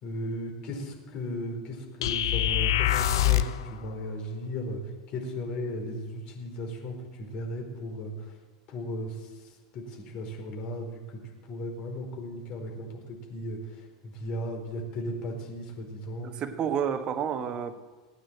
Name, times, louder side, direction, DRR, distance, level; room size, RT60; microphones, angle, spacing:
voice 1, 0.0-4.8 5.1-8.4 8.7-11.2 11.5-16.3, left 1 dB, 50° left, 2 dB, 4.7 m, -36 dB
sound 1, 2.0-3.6, left 12 dB, 75° left, 0.8 m, -24 dB
voice 2, 16.2-17.8, right 8 dB, 40° right, 8 dB, 1.5 m, -30 dB
17.5 x 9.3 x 7.6 m, 1.3 s
hypercardioid pair, 90°, 2 cm